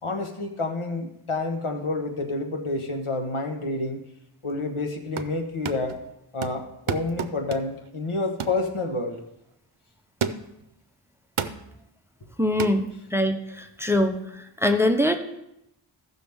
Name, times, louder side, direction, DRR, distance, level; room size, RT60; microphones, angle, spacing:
voice 1, 0.0-4.0 4.4-6.0 6.3-9.2, left 3 dB, 80° left, 3 dB, 1.3 m, -29 dB
sound 1, 4.9-5.4 5.6-6.0 6.4-7.8 8.4-8.6 9.1-9.3 10.2-10.6 11.4-11.7 12.6-12.8, right 7 dB, 75° right, 0.7 m, -31 dB
voice 2, 12.4-14.2 14.6-15.2, left 1 dB, 5° right, 6 dB, 0.7 m, -23 dB
15.0 x 6.2 x 3.5 m, 0.84 s
wide cardioid pair, 45°, 50 cm